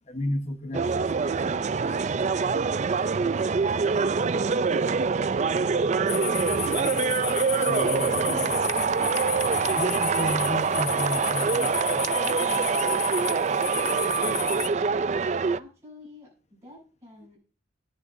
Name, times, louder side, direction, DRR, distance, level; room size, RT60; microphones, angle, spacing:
voice 1, 0.0-2.4 5.6-6.4 7.5-8.6 9.8-13.3, left 1 dB, 35° left, 1.1 m, -35 dB
sound 1, 0.7-15.6, right 5 dB, 40° right, 0.4 m, -25 dB
sound 2, 6.1-14.7, left 12 dB, 55° left, 0.4 m, -33 dB
voice 2, 15.2-17.4, left 2 dB, 15° right, 6.4 m, -49 dB
18.0 x 6.6 x 2.6 m
head